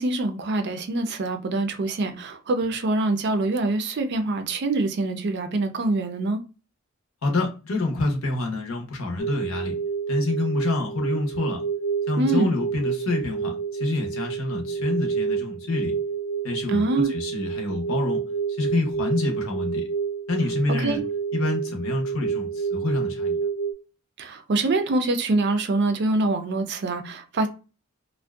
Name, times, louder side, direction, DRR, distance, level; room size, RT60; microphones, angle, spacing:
voice 1, 0.0-6.4 12.2-12.5 16.7-17.1 20.8-21.0 24.2-27.5, right 2 dB, 55° right, 0.4 m, -25 dB
voice 2, 7.2-9.7 10.1-11.6 12.1-15.9 16.4-18.2 18.5-19.8 20.3-21.0 21.3-23.4, left 2 dB, 70° left, 0.7 m, -27 dB
sound 1, 9.2-23.7, right 6 dB, 30° left, 0.4 m, -29 dB
2.5 x 2.1 x 2.3 m
head